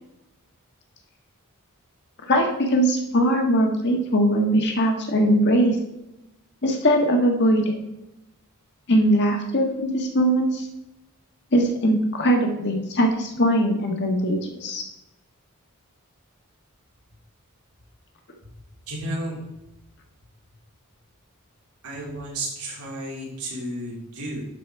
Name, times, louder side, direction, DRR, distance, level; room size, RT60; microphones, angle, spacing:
voice 1, 2.3-5.7 6.6-7.7 8.9-10.7 11.5-14.8, equal, 50° left, 2 dB, 1.4 m, -21 dB
voice 2, 18.9-19.4 21.8-24.5, right 1 dB, 90° right, -3 dB, 2.9 m, -32 dB
11.0 x 4.2 x 4.6 m, 0.90 s
head